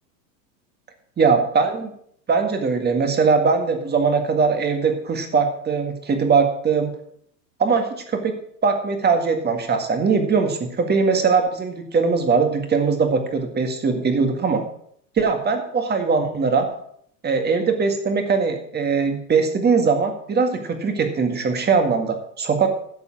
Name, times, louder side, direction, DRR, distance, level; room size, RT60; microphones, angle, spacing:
voice 1, 1.2-1.9 2.3-6.9 7.6-14.6 15.2-16.7 17.2-22.7, right 5 dB, 20° right, 5 dB, 1.8 m, -21 dB
11.0 x 7.0 x 6.1 m, 0.67 s
hypercardioid pair, 110°, 50 cm